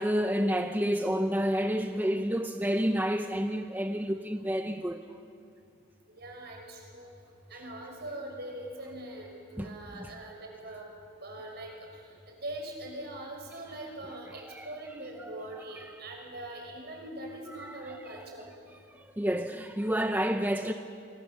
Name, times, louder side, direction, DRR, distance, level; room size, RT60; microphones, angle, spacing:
voice 1, 0.0-5.2 9.6-10.1 14.3-14.7 15.2-16.0 17.5-18.5 18.9-20.7, equal, 10° right, 0.7 m, -30 dB
voice 2, 6.2-7.1 7.5-10.9 11.2-18.5, right 1 dB, 55° right, 5.8 m, -42 dB
28.5 x 23.5 x 7.1 m
head